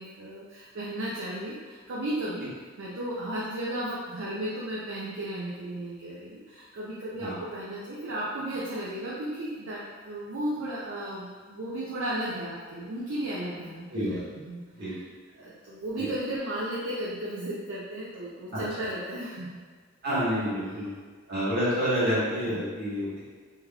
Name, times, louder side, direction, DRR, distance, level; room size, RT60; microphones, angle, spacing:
voice 1, 0.0-2.5 2.8-14.2 14.4-15.0 15.4-19.6 20.6-20.8 22.4-22.6, right 1 dB, 70° right, -7 dB, 0.5 m, -34 dB
voice 2, 20.0-20.9 21.3-23.2, equal, 50° right, -10 dB, 1.5 m, -28 dB
3.6 x 2.9 x 2.3 m, 1.5 s
head